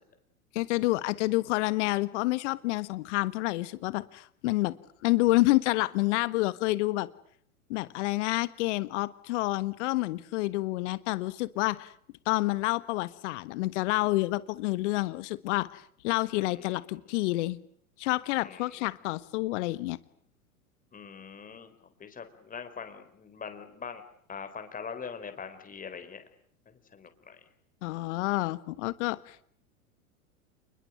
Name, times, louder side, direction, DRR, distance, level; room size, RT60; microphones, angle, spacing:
voice 1, 0.5-4.7 5.0-7.1 7.7-11.9 12.2-17.6 18.0-20.0 27.8-29.4, left 20 dB, 55° left, 16 dB, 1.4 m, -28 dB
voice 2, 16.4-16.7 17.0-17.1 18.4-18.9 20.9-21.7 22.0-24.0 24.3-26.2 26.9-27.4, left 6 dB, 20° left, 8 dB, 4.5 m, -42 dB
29.0 x 21.5 x 9.2 m, 0.64 s
hypercardioid pair, 100°, 43 cm